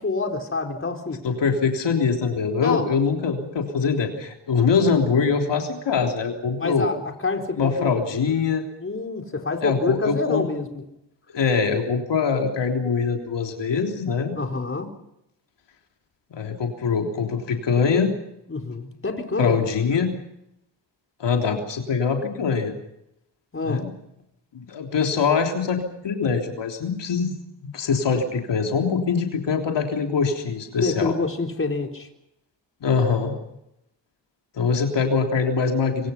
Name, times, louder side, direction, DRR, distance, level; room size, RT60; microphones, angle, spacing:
voice 1, 0.0-1.2 2.6-2.9 6.6-7.0 7.2-8.0 8.8-10.7 14.4-14.9 18.5-19.6 23.5-23.8 30.8-32.1, left 3 dB, 30° left, 3 dB, 4.4 m, -27 dB
voice 2, 1.2-6.9 7.6-8.7 9.6-10.5 11.3-14.3 16.3-18.1 19.4-20.1 21.2-22.7 23.6-23.9 24.5-27.3 27.6-31.1 32.8-33.3 34.5-36.1, left 5 dB, 70° left, 3 dB, 3.5 m, -23 dB
25.0 x 24.5 x 5.8 m, 0.81 s
cardioid pair, 80°, 44 cm